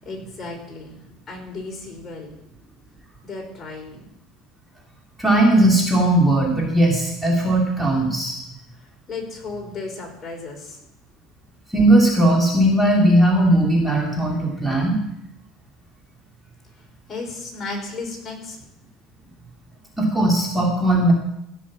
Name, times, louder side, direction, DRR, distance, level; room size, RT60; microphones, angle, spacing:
voice 1, 0.0-2.3 3.2-4.1 8.8-10.8 17.1-18.7, left 3 dB, 30° left, 0 dB, 4.7 m, -35 dB
voice 2, 5.2-8.4 11.7-15.0 20.0-21.1, right 1 dB, 5° right, -2 dB, 2.8 m, -18 dB
16.0 x 6.2 x 7.4 m, 0.78 s
supercardioid pair, 100°, 0 cm